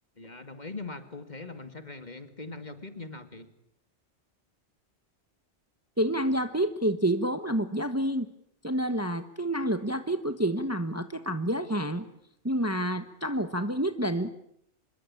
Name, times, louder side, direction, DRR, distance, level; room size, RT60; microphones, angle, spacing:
voice 1, 0.2-3.5, left 3 dB, 40° left, 9 dB, 2.4 m, -41 dB
voice 2, 6.0-8.3 8.6-12.1 12.4-14.3, right 1 dB, 15° right, 10 dB, 1.2 m, -28 dB
26.0 x 22.0 x 8.7 m, 0.74 s
omnidirectional pair, 1.2 m